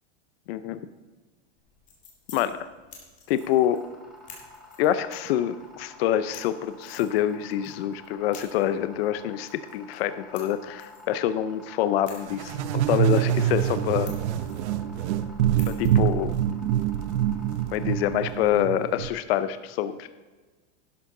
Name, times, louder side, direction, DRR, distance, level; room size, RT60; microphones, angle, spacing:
voice 1, 0.5-0.8 2.3-2.7 3.3-3.8 4.8-12.5 12.9-14.1 15.7-16.3 17.7-20.1, left 11 dB, 55° left, 12 dB, 0.7 m, -26 dB
sound 1, 1.6-18.5, left 5 dB, 20° left, 2.2 m, -53 dB
sound 2, 3.3-18.7, left 2 dB, ahead, 1.4 m, -50 dB
sound 3, 12.3-19.1, right 11 dB, 70° right, 0.7 m, -25 dB
11.5 x 11.5 x 3.9 m, 1.3 s
supercardioid pair, 170°, 36 cm